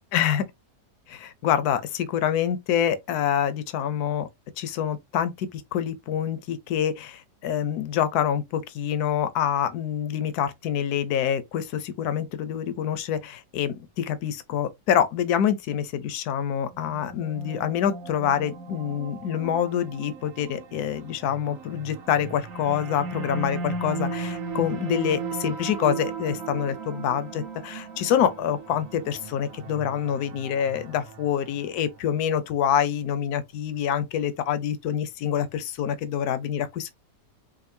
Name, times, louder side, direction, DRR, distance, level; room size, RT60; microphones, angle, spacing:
voice 1, 0.1-0.5 1.1-4.3 4.6-36.9, left 9 dB, 70° left, 1.1 m, -26 dB
sound 1, 16.7-32.0, right 4 dB, 55° right, 1.3 m, -36 dB
5.2 x 2.3 x 2.7 m
omnidirectional pair, 1.8 m